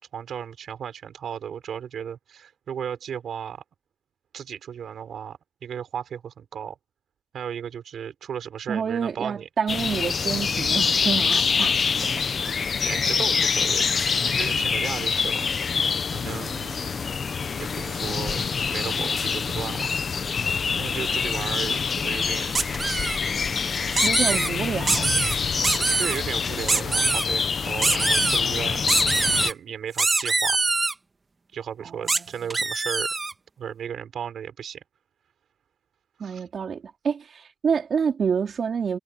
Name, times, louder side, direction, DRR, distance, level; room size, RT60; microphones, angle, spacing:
voice 1, 0.1-3.6 4.3-6.8 7.3-9.4 12.8-13.9 14.2-15.5 16.1-17.0 17.6-20.0 20.8-22.9 24.3-24.5 25.6-28.8 29.4-30.6 31.5-33.1 33.6-34.8 36.2-36.4, right 8 dB, 75° right, 5.4 m, -35 dB
voice 2, 8.7-12.0 24.0-25.1 31.8-32.5 36.2-39.0, right 6 dB, 60° right, 4.1 m, -28 dB
sound 1, 9.7-29.5, left 5 dB, 50° left, 0.8 m, -25 dB
sound 2, 22.5-23.2 23.9-24.5 24.9-25.4 25.6-26.2 26.7-27.2 27.8-28.4 28.9-29.5 30.0-30.9 32.1-32.2 32.5-33.3, right 3 dB, 30° right, 2.1 m, -23 dB
wide cardioid pair, 115°, 0 cm